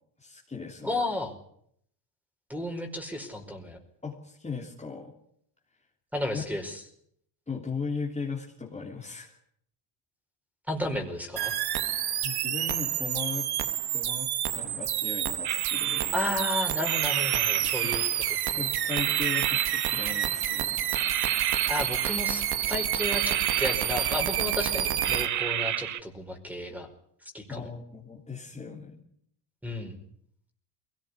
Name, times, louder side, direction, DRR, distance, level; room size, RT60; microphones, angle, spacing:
voice 1, 0.2-1.0 4.0-5.1 6.3-6.4 7.5-9.3 12.2-13.5 13.9-16.2 17.6-17.9 18.4-20.8 27.5-29.0, left 5 dB, 15° left, -1 dB, 3.2 m, -37 dB
voice 2, 0.8-1.3 2.5-3.8 6.1-6.8 10.7-11.5 16.1-18.7 21.7-26.9 27.3-27.7 29.6-30.0, left 1 dB, 5° right, 7 dB, 4.9 m, -33 dB
sound 1, 11.4-25.3, right 11 dB, 55° right, 1.7 m, -29 dB
sound 2, 15.4-16.5 16.8-18.5 18.9-20.6 20.9-22.6 23.0-24.6 25.0-26.0, right 11 dB, 40° right, 1.0 m, -32 dB
22.5 x 18.0 x 9.8 m, 0.70 s
cardioid pair, 115°, 44 cm